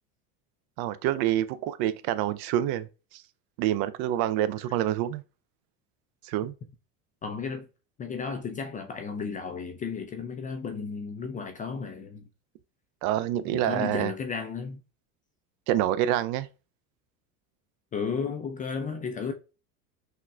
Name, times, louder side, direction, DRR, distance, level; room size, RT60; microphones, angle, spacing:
voice 1, 0.8-3.2 3.6-5.2 6.2-6.5 13.0-14.1 15.7-16.5, right 12 dB, 55° right, 0.5 m, -27 dB
voice 2, 7.2-7.7 8.0-12.2 13.5-14.8 17.9-19.3, left 5 dB, 20° left, 0.3 m, -33 dB
5.6 x 2.1 x 2.3 m
hypercardioid pair, 90°, 46 cm